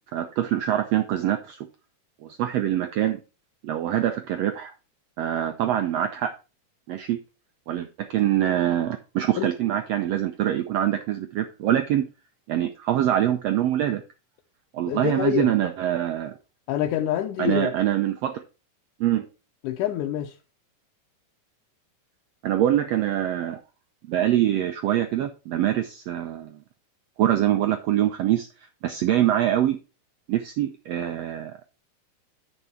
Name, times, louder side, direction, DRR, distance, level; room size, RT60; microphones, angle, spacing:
voice 1, 0.1-1.7 2.2-3.2 3.6-4.7 5.2-6.3 6.9-7.2 7.7-12.1 12.5-14.0 14.7-16.3 17.4-18.4 19.0-19.3 22.4-23.6 24.1-26.6 27.2-28.5 28.8-29.8 30.3-31.8, right 12 dB, 80° right, 1.5 m, -24 dB
voice 2, 14.9-15.5 16.7-17.7 19.6-20.3, left 11 dB, 80° left, 2.2 m, -26 dB
9.9 x 5.4 x 4.4 m
omnidirectional pair, 3.7 m